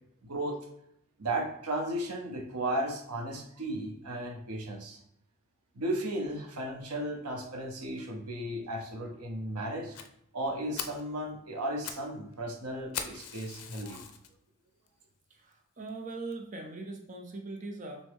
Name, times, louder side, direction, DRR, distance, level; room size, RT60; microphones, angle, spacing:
voice 1, 0.2-0.7 1.2-5.0 5.7-10.0 10.3-14.0, right 1 dB, 80° right, 2 dB, 0.8 m, -35 dB
Fire, 9.9-10.1 10.5-10.6 10.8-11.1 11.6-12.1 12.3-12.4 12.9-14.3 14.9-15.0 15.5-15.6 15.9-16.0 16.3-16.4, left 8 dB, 90° left, 0.5 m, -40 dB
voice 2, 15.3-18.1, right 3 dB, 35° right, 2 dB, 0.5 m, -41 dB
6.1 x 2.1 x 3.5 m, 0.72 s
head